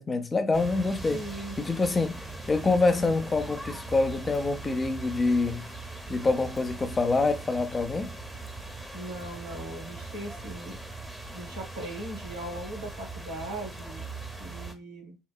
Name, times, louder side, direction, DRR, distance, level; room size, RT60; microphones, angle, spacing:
voice 1, 0.0-1.2 1.6-5.7 6.1-8.2, left 3 dB, 30° left, 0.5 m, -26 dB
sound 1, 0.5-14.7, right 3 dB, ahead, 0.8 m, -40 dB
voice 2, 1.1-1.6 8.9-10.8 11.3-14.0 14.4-15.2, right 1 dB, 90° right, 0.9 m, -39 dB
2.8 x 2.0 x 2.2 m
hypercardioid pair, 60°, 0 cm